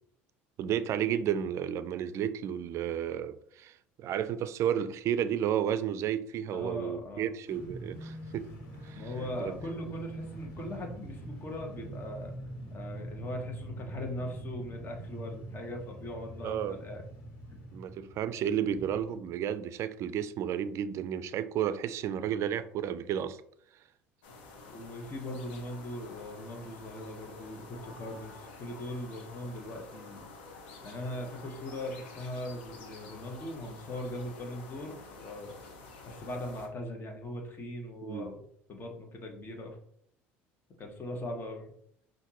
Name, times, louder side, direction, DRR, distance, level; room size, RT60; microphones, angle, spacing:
voice 1, 0.6-8.5 8.8-9.5 16.4-16.8 17.7-23.4 38.0-38.3, right 9 dB, 55° right, 0.4 m, -32 dB
voice 2, 6.5-7.3 8.9-12.3 12.7-17.0 24.7-30.3 30.8-35.5 36.1-38.4 38.7-39.8 40.8-41.7, left 1 dB, 35° left, 1.2 m, -40 dB
sound 1, 7.5-19.2, right 2 dB, 70° left, 1.6 m, -44 dB
sound 2, 24.2-36.7, left 3 dB, 85° left, 0.8 m, -49 dB
5.7 x 2.6 x 2.9 m
supercardioid pair, 80°, 6 cm